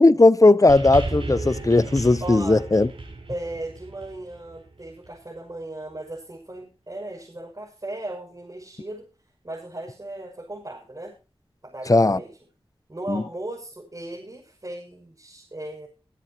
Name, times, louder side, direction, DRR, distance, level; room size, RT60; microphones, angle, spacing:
voice 1, 0.0-2.9 11.9-12.2 13.1-13.2, left 2 dB, 35° left, 0.9 m, -17 dB
sound 1, 0.7-5.2 6.1-6.2, right 2 dB, 70° right, 7.3 m, -34 dB
voice 2, 2.2-2.6 3.3-9.1 9.4-11.1 11.6-12.4 12.9-15.9, right 1 dB, 40° right, 6.5 m, -36 dB
24.0 x 9.8 x 3.0 m
wide cardioid pair, 70°, 10 cm